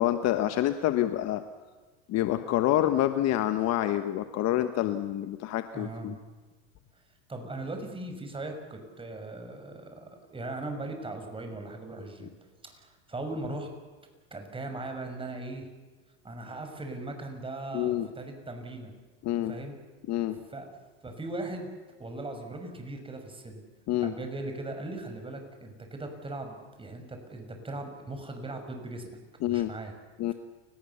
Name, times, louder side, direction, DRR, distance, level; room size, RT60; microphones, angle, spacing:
voice 1, 0.0-1.4 2.1-6.2 17.7-18.1 19.2-19.5 20.1-20.4 23.9-24.1 29.4-29.7 30.2-30.3, left 13 dB, 45° left, 9 dB, 1.4 m, -27 dB
voice 2, 5.7-6.2 7.3-12.3 12.6-13.7 14.3-15.7 16.2-18.9 19.5-19.8 20.5-20.7 21.0-21.7 22.0-23.6 24.0-29.1 29.5-29.9, right 2 dB, 15° right, 5 dB, 6.0 m, -39 dB
29.5 x 19.0 x 7.1 m, 1.3 s
supercardioid pair, 110°, 37 cm